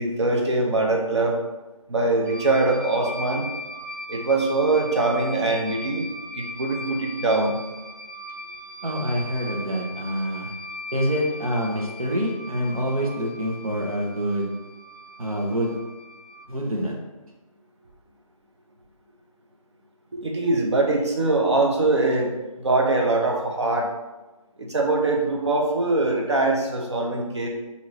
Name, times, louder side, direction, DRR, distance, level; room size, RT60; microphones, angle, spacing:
voice 1, 0.0-1.4 1.9-3.5 4.1-6.1 6.3-7.5 20.1-22.3 22.6-23.9 24.6-27.5, right 2 dB, 50° right, 0 dB, 0.9 m, -22 dB
sound 1, 2.3-16.4, left 1 dB, 30° right, 0.4 m, -39 dB
voice 2, 8.8-10.5 10.9-14.5 15.2-15.8 16.5-16.9, equal, 70° right, -1 dB, 1.2 m, -26 dB
5.8 x 2.8 x 3.0 m, 1.1 s
figure-of-eight pair, 160°, 19 cm